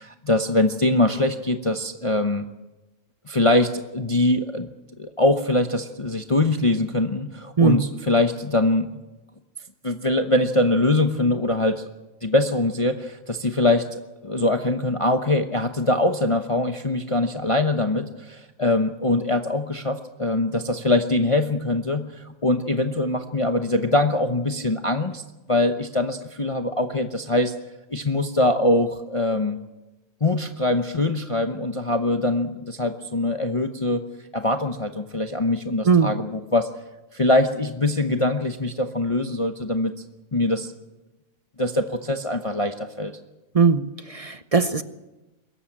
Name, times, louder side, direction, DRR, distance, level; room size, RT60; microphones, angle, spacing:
voice 1, 0.0-2.5 3.3-4.7 5.0-8.9 9.8-11.8 12.2-25.2 25.5-27.5 27.9-29.6 30.2-34.0 34.3-36.7 37.1-39.9 40.3-40.7 41.6-43.1, left 2 dB, 25° left, 6 dB, 0.8 m, -23 dB
voice 2, 43.5-44.8, right 5 dB, 35° right, 11 dB, 0.6 m, -19 dB
23.5 x 14.0 x 8.8 m, 1.0 s
omnidirectional pair, 1.5 m